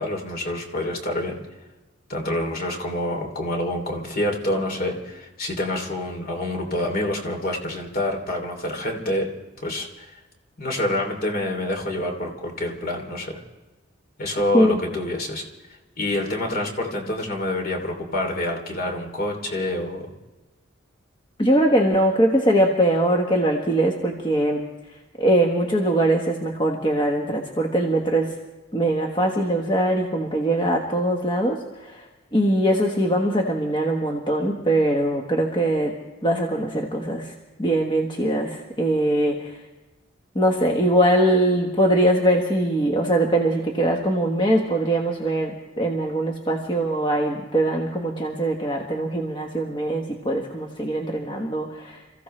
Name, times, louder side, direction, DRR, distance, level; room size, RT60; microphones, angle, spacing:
voice 1, 0.0-1.4 2.1-9.3 9.6-10.2 10.6-13.4 14.2-15.5 16.0-20.1, left 1 dB, 50° left, 2 dB, 3.0 m, -27 dB
voice 2, 21.4-24.6 25.2-28.3 28.7-36.0 36.2-37.3 37.6-39.6 40.3-52.0, right 1 dB, 25° left, 0 dB, 1.4 m, -22 dB
28.5 x 15.0 x 3.3 m, 1.1 s
head